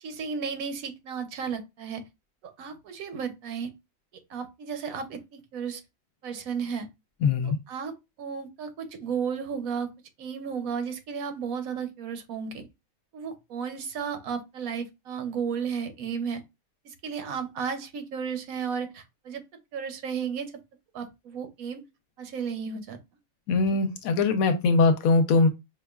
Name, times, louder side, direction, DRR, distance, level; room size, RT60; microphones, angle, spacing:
voice 1, 0.0-2.1 2.4-3.7 4.3-5.8 6.2-6.9 7.4-7.9 8.2-9.9 10.2-12.7 13.1-16.4 16.8-19.4 19.7-20.5 20.9-21.8 22.2-23.0, right 6 dB, 80° right, 1.2 m, -33 dB
voice 2, 7.2-7.6 23.5-25.5, left 3 dB, 90° left, 1.1 m, -21 dB
5.0 x 2.3 x 2.3 m
omnidirectional pair, 1.4 m